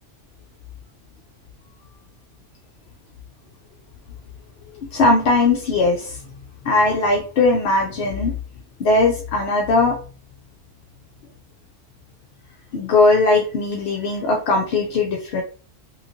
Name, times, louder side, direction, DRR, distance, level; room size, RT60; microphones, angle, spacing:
voice 1, 4.9-6.2 6.6-8.4 8.8-10.0 12.7-15.4, left 3 dB, 65° left, 0 dB, 0.7 m, -19 dB
3.0 x 2.4 x 2.6 m, 0.40 s
omnidirectional pair, 1.3 m